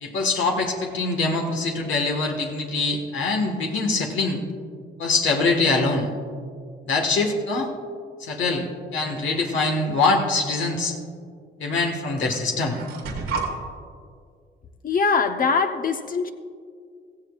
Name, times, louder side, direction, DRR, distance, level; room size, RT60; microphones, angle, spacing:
voice 1, 0.0-4.4 5.0-6.1 6.8-7.7 8.2-8.7 8.9-11.0 11.6-12.8, left 3 dB, 75° left, 2 dB, 1.5 m, -23 dB
sound 1, 9.2-9.7 10.8-10.9 11.9-12.0 12.2-13.5, right 4 dB, 90° right, 1.9 m, -32 dB
voice 2, 14.8-16.3, left 5 dB, 45° left, 6 dB, 0.9 m, -22 dB
16.0 x 15.0 x 2.4 m, 2.2 s
cardioid pair, 90°, 20 cm